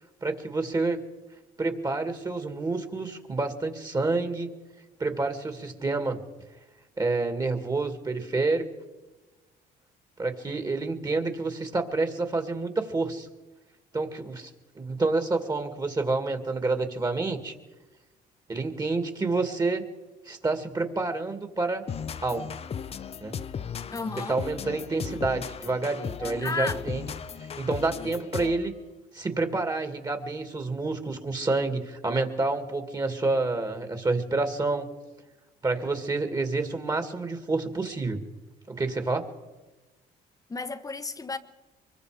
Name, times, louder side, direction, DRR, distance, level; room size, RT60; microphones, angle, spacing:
voice 1, 0.2-1.0 1.6-4.5 5.0-6.2 7.0-8.6 10.2-13.3 13.9-14.5 14.8-17.5 18.5-19.9 20.3-21.8 22.2-22.5 23.2-23.4 24.3-27.1 27.4-28.7 29.1-34.9 35.6-38.2 38.7-39.3, right 3 dB, 25° right, 7 dB, 2.4 m, -28 dB
sound 1, 21.9-28.7, left 7 dB, 35° left, 0.8 m, -36 dB
voice 2, 23.9-24.4 26.2-26.8 40.5-41.4, left 4 dB, 20° left, 11 dB, 1.2 m, -33 dB
24.0 x 22.0 x 5.1 m, 1.2 s
cardioid pair, 110°, 17 cm